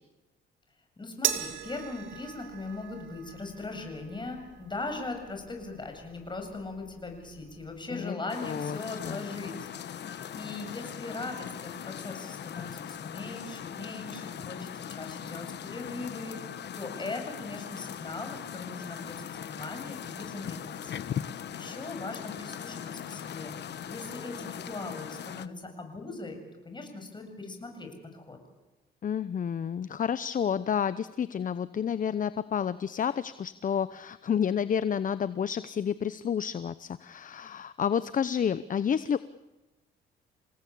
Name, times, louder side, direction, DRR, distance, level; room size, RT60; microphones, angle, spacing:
voice 1, 1.0-21.0 21.5-26.4 26.6-28.4, left 3 dB, 25° left, 4 dB, 7.7 m, -40 dB
sound 1, 1.2-7.8, right 11 dB, 90° right, 2.5 m, -39 dB
sound 2, 8.3-25.5, left 9 dB, 60° left, 1.2 m, -40 dB
voice 2, 8.4-9.2 29.0-39.2, left 8 dB, 40° left, 15 dB, 0.8 m, -30 dB
29.0 x 18.0 x 8.6 m, 1.1 s
cardioid pair, 90°, 20 cm